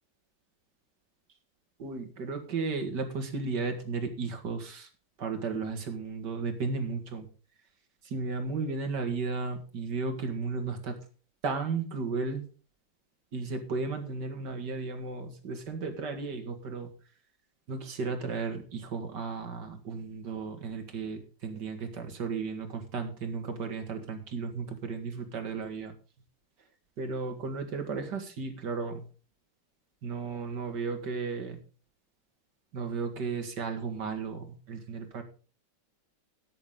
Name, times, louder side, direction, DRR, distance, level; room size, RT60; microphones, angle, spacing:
voice 1, 1.8-4.9 5.2-7.3 8.0-11.0 11.4-12.5 13.3-16.9 17.7-25.9 27.0-29.1 30.0-31.6 32.7-35.2, right 4 dB, 65° right, 6 dB, 2.5 m, -34 dB
14.0 x 9.7 x 3.8 m, 0.37 s
omnidirectional pair, 2.1 m